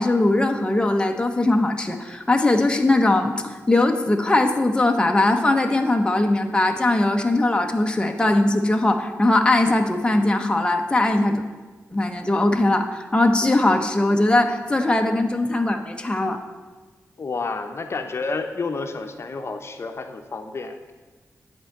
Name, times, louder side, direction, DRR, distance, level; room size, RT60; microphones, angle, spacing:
voice 1, 0.0-11.4 11.9-16.4, left 2 dB, 15° left, 4 dB, 0.8 m, -20 dB
voice 2, 17.2-20.9, left 3 dB, 50° left, 6 dB, 0.8 m, -30 dB
10.0 x 4.5 x 7.8 m, 1.3 s
cardioid pair, 80°, 6 cm